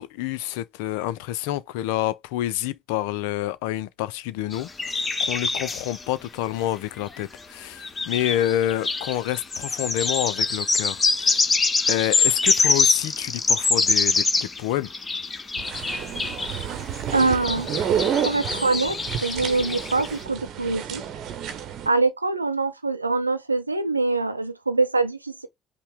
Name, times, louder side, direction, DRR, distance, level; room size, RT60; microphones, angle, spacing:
voice 1, 0.0-11.4 11.9-14.9, left 13 dB, 65° left, 0.4 m, -28 dB
sound 1, 4.5-6.0 7.2-7.3 7.8-14.6 14.8-20.1, left 3 dB, 25° left, 1.0 m, -24 dB
sound 2, 15.6-21.9, right 8 dB, 50° right, 0.9 m, -30 dB
voice 2, 17.1-17.7 18.2-21.0 21.9-25.5, right 3 dB, 85° right, 0.5 m, -24 dB
5.4 x 2.1 x 3.5 m
figure-of-eight pair, 60°, 0 cm